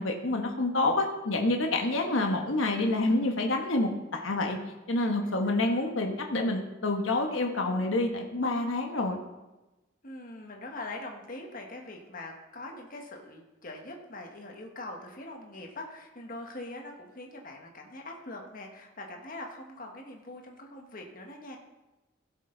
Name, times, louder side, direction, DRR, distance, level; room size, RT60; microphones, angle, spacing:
voice 1, 0.0-4.6 4.9-9.2, left 2 dB, 85° left, 2 dB, 1.3 m, -28 dB
voice 2, 10.0-21.6, left 2 dB, 45° left, 1 dB, 1.5 m, -43 dB
16.0 x 6.7 x 3.9 m, 1.1 s
head